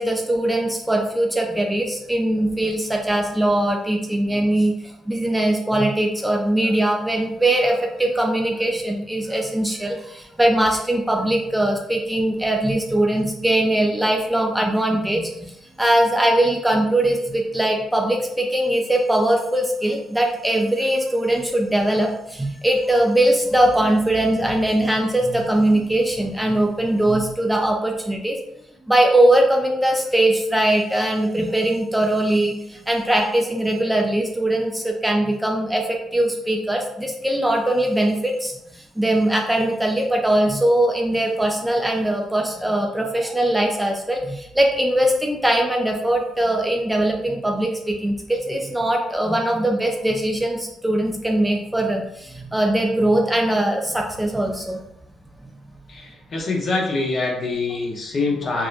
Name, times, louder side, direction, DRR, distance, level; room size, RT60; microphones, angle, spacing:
voice 1, 0.0-15.5 15.8-28.4 28.9-54.8, right 1 dB, 5° right, 1 dB, 0.4 m, -21 dB
voice 2, 55.9-58.7, left 3 dB, 45° left, -1 dB, 0.7 m, -24 dB
2.8 x 2.1 x 2.4 m, 0.80 s
cardioid pair, 90°, 0 cm